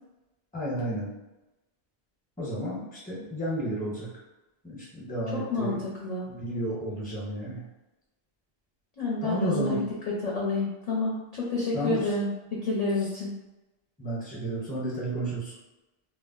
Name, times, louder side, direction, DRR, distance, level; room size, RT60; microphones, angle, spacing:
voice 1, 0.5-1.1 2.4-4.1 4.6-5.8 6.3-7.6 9.2-9.8 11.7-12.1 14.0-15.5, right 1 dB, 10° left, -6 dB, 0.8 m, -32 dB
voice 2, 5.3-5.7 6.0-6.3 9.0-9.9 10.2-13.3, left 2 dB, 45° left, -6 dB, 0.6 m, -29 dB
2.3 x 2.1 x 3.7 m, 1.0 s
omnidirectional pair, 1.1 m